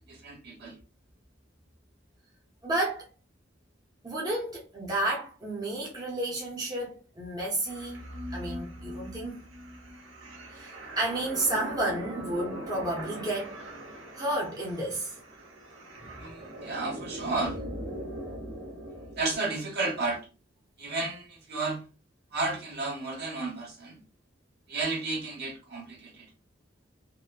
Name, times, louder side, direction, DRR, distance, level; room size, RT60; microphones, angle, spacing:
voice 1, 0.1-0.8 16.2-17.6 19.2-20.3 20.8-21.9 22.3-24.0 24.7-26.3, right 3 dB, 55° right, 1.0 m, -32 dB
voice 2, 2.6-3.1 4.0-8.0 8.3-9.4 10.5-13.5 14.1-15.1 16.2-16.3, right 1 dB, 20° right, 0.6 m, -31 dB
sound 1, 7.6-19.4, equal, 85° right, 0.8 m, -41 dB
2.9 x 2.1 x 2.3 m
head